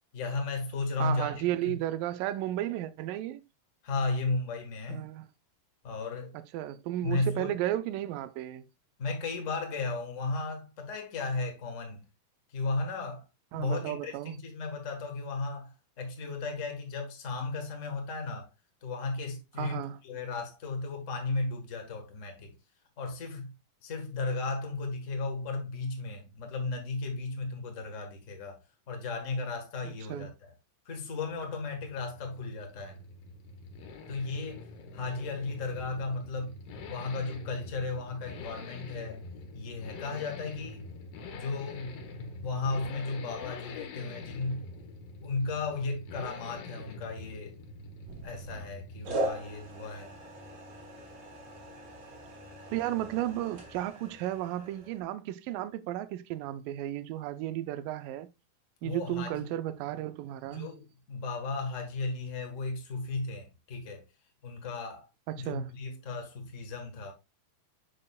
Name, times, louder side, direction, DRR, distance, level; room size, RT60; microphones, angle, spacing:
voice 1, 0.1-1.7 3.8-5.1 5.8-6.3 7.0-7.5 9.0-12.0 12.5-13.2 13.5-18.5 18.8-22.5 23.0-23.5 23.8-28.6 28.9-30.3 30.8-33.0 34.1-36.6 36.9-39.2 39.5-40.9 41.3-44.6 45.2-47.6 48.2-50.2 58.8-59.5 60.5-64.0 64.4-65.1 65.3-67.1, left 3 dB, 55° left, 0.8 m, -35 dB
voice 2, 1.0-3.4 4.9-5.3 6.5-8.7 13.5-14.4 19.6-20.0 29.9-30.3 52.7-58.3 58.8-60.7 65.3-65.7, right 13 dB, 85° right, 2.3 m, -34 dB
Accelerating revving vroom, 31.3-49.4 49.6-49.7, left 3 dB, 90° left, 2.9 m, -46 dB
sound 1, 48.1-48.7 49.1-55.0, right 1 dB, 60° right, 4.0 m, -40 dB
7.5 x 6.5 x 2.3 m
omnidirectional pair, 3.9 m